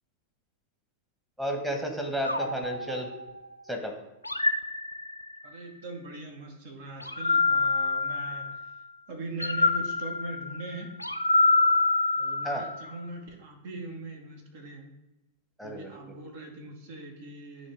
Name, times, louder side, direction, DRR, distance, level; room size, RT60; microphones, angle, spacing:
voice 1, 1.4-3.1 3.7-4.0 12.4-12.6 15.6-16.2, equal, 5° right, 1 dB, 1.2 m, -32 dB
sound 1, 2.2-3.6 4.2-5.5 7.0-8.7 9.4-12.9, left 3 dB, 85° left, 0.3 m, -26 dB
voice 2, 5.4-11.0 12.2-14.9 15.6-17.7, right 2 dB, 50° right, 2 dB, 1.3 m, -41 dB
9.3 x 3.3 x 4.6 m, 0.95 s
figure-of-eight pair, 90°, 0 cm